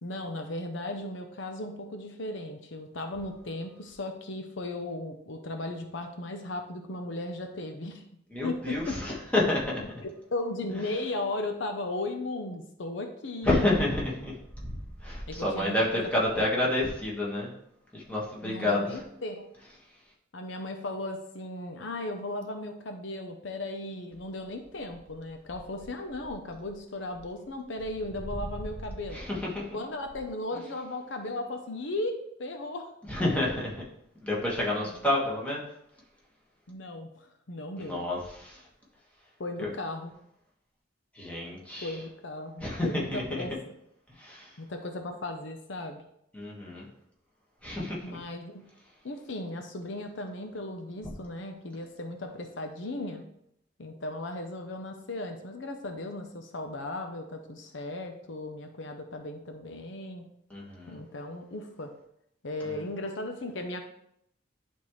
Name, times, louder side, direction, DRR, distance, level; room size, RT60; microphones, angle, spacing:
voice 1, 0.0-8.1 8.4-9.0 10.0-13.7 15.3-16.1 16.3-16.4 18.4-19.5 20.3-29.2 29.7-32.9 34.8-34.9 36.7-38.0 39.4-40.1 41.8-43.5 44.6-46.0 48.0-48.6 49.0-53.2 53.8-60.3 60.9-61.9 62.4-63.9, left 2 dB, 75° left, 5 dB, 0.8 m, -36 dB
voice 2, 8.3-10.0 10.7-11.0 13.4-14.3 14.6-14.7 15.0-17.5 17.9-19.0 19.6-19.8 29.1-29.7 30.5-30.6 33.0-33.8 34.2-35.6 37.8-38.7 39.6-39.7 41.1-42.0 42.6-43.5 44.1-44.6 46.3-46.9 47.6-48.2 60.5-61.0 62.6-62.8, left 1 dB, 5° left, -5 dB, 1.6 m, -29 dB
11.0 x 3.7 x 3.2 m, 0.75 s
head